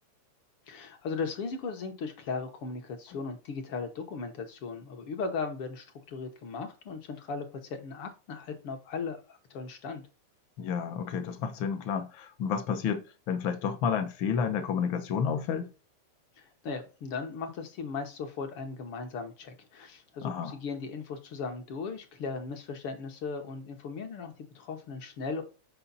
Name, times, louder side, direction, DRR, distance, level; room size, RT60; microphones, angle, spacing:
voice 1, 0.7-10.0 16.4-25.4, left 4 dB, 65° left, 1.5 m, -37 dB
voice 2, 10.6-15.7 20.2-20.6, left 7 dB, 80° left, 1.1 m, -30 dB
7.0 x 5.0 x 3.9 m
omnidirectional pair, 3.3 m